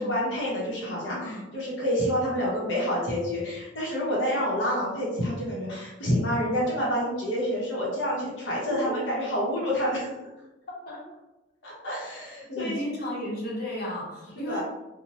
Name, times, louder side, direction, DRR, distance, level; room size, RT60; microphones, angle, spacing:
voice 1, 0.0-10.1 11.6-12.8 14.4-14.6, equal, 85° left, -5 dB, 0.8 m, -28 dB
voice 2, 1.1-1.4 2.2-2.5 8.7-9.0 10.9-11.0 12.5-14.6, left 1 dB, 55° left, -3 dB, 0.8 m, -33 dB
2.8 x 2.1 x 2.8 m, 1.0 s
head